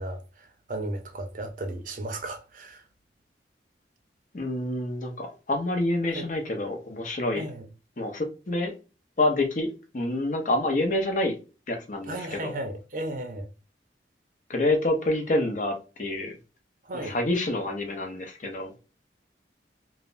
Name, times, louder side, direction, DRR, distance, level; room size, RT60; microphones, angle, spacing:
voice 1, 0.0-2.8 6.0-6.3 7.4-7.7 12.1-13.5 16.8-17.1, right 1 dB, 45° right, 0.5 m, -35 dB
voice 2, 4.3-7.4 8.0-8.7 9.2-11.4 11.7-12.5 14.5-16.4 16.9-18.7, left 1 dB, 45° left, 0.7 m, -27 dB
3.3 x 2.0 x 2.5 m
head